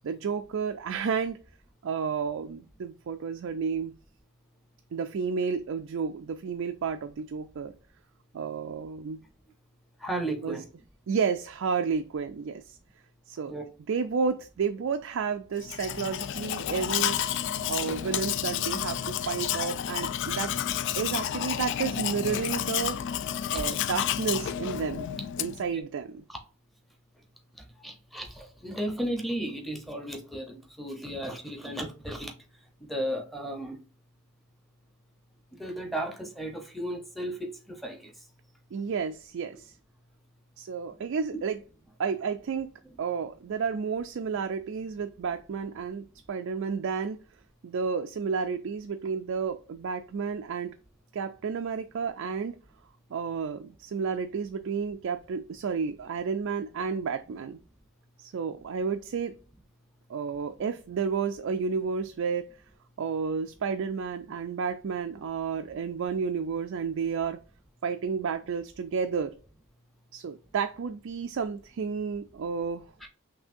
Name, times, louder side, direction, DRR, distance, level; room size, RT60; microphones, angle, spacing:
voice 1, 0.0-1.4 1.8-3.9 4.9-7.7 8.3-9.2 10.4-10.6 11.1-12.8 13.3-13.6 13.9-17.2 17.7-20.5 21.0-23.0 23.5-25.1 25.4-26.2 38.7-39.7 40.6-41.6 42.0-42.7 43.0-47.2 47.6-50.7 51.1-52.6 53.1-57.6 58.2-59.3 60.1-62.5 63.0-67.4 67.8-69.3 70.1-72.9, right 6 dB, 60° right, 0.4 m, -31 dB
voice 2, 10.0-10.6 13.5-13.6 23.5-23.7 25.7-25.8 27.8-32.3 32.8-33.8 35.5-38.1 42.8-42.9 73.0-73.1, right 1 dB, ahead, 0.8 m, -34 dB
Domestic sounds home sounds, 15.6-25.7, left 10 dB, 55° left, 0.3 m, -31 dB
5.9 x 2.7 x 2.6 m
head